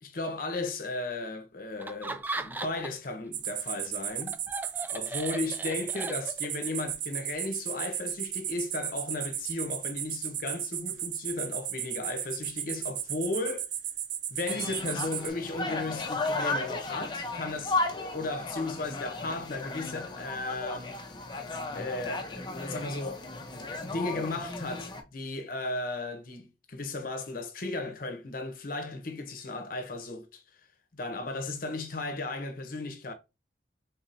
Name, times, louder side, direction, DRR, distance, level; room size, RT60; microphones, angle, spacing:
voice 1, 0.0-4.4 4.9-13.7 14.3-21.0 21.7-30.4 30.9-33.1, left 2 dB, 50° left, 0.9 m, -35 dB
Laughter, 1.8-3.1 3.4-6.6, right 2 dB, 10° right, 0.3 m, -38 dB
sound 1, 3.3-15.3, right 10 dB, 85° right, 0.7 m, -35 dB
sound 2, 14.5-25.0, left 3 dB, 25° left, 0.7 m, -35 dB
4.0 x 2.7 x 4.1 m
head